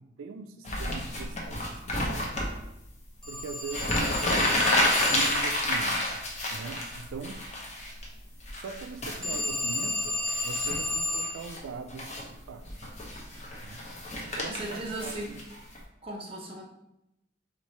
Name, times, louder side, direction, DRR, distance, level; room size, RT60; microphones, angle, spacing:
voice 1, 0.0-2.3 3.3-4.6 5.1-6.2 6.5-7.5 8.6-12.7 13.6-13.8 14.2-15.4, right 5 dB, 90° right, 7 dB, 0.3 m, -41 dB
sound 1, 0.6-2.5 3.4-3.5 3.7-8.1 8.4-9.4 10.3-10.8 11.2-11.6 11.9-12.2 12.6-15.8, left 1 dB, 35° left, 0.8 m, -29 dB
Telephone, 3.2-5.5 9.2-11.4, left 2 dB, 5° left, 0.8 m, -32 dB
voice 2, 14.5-15.3 16.0-16.6, right 1 dB, 30° right, -2 dB, 0.8 m, -37 dB
3.6 x 3.2 x 4.1 m, 0.85 s
head